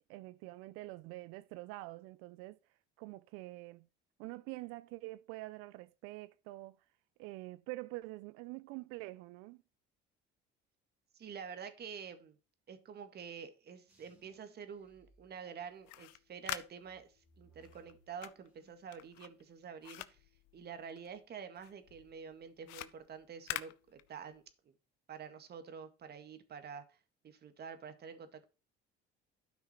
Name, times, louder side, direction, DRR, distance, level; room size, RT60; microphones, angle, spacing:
voice 1, 0.0-2.6 3.0-3.9 4.2-6.8 7.2-9.6, right 20 dB, 80° right, 0.4 m, -46 dB
voice 2, 11.1-12.4 12.7-20.3 20.5-24.7 25.1-28.5, right 7 dB, 50° right, 1.9 m, -48 dB
sound 1, 13.9-15.9 16.4-19.0 19.3-19.8, right 3 dB, 5° right, 3.0 m, -69 dB
sound 2, 15.7-21.3 21.6-24.5, left 17 dB, 90° left, 0.6 m, -46 dB
12.0 x 5.8 x 4.3 m
supercardioid pair, 80°, 21 cm